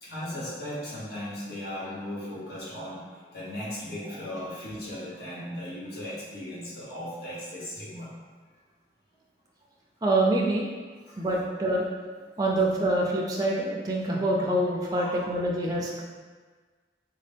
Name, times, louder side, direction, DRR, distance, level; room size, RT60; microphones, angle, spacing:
voice 1, 0.0-8.2 11.1-11.3 14.9-15.2, left 1 dB, 65° left, -10 dB, 1.1 m, -37 dB
voice 2, 10.0-10.7 11.2-11.9 12.4-16.0, right 1 dB, 20° right, -3 dB, 0.3 m, -26 dB
4.0 x 2.1 x 3.3 m, 1.5 s
head